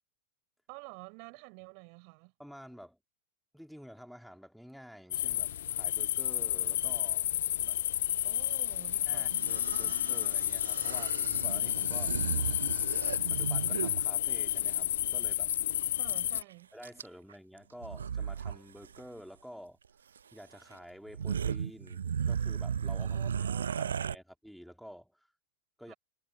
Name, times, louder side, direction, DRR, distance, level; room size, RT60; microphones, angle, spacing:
voice 1, 0.7-2.3 8.2-9.4 9.7-9.9 16.0-16.7 23.1-24.0 25.9-26.0, right 40 dB or more, 45° right, 5.5 m, -50 dB
voice 2, 2.4-3.0 3.5-7.8 9.1-12.2 13.3-15.5 16.7-19.8 20.3-23.3 23.8-25.3 25.8-25.9, equal, ahead, 3.7 m, -50 dB
sound 1, 5.1-16.4, left 12 dB, 60° left, 0.8 m, -31 dB
sound 2, 9.3-14.1 15.5-15.6 15.8-16.4 16.8-17.3 17.8-18.6 18.8-19.0 20.2-20.3 20.7-20.8 21.1-24.2, right 7 dB, 70° right, 0.4 m, -35 dB
figure-of-eight pair, 90°, 0 cm